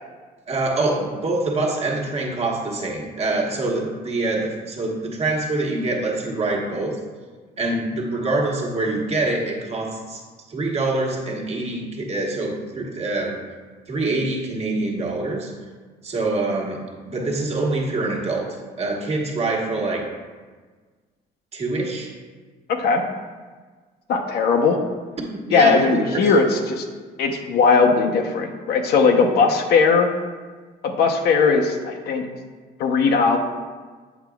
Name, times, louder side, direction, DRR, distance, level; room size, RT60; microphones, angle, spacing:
voice 1, 0.5-7.0 7.6-10.2 10.5-13.4 13.9-15.5 16.0-20.1 21.5-22.1 25.5-26.3, right 2 dB, 40° right, -1 dB, 1.2 m, -25 dB
voice 2, 22.7-23.0 24.1-24.8 25.5-26.8 27.2-30.1 30.8-32.2 32.8-33.4, left 4 dB, 70° left, 3 dB, 0.8 m, -18 dB
8.1 x 5.7 x 2.3 m, 1.4 s
cardioid pair, 110°, 17 cm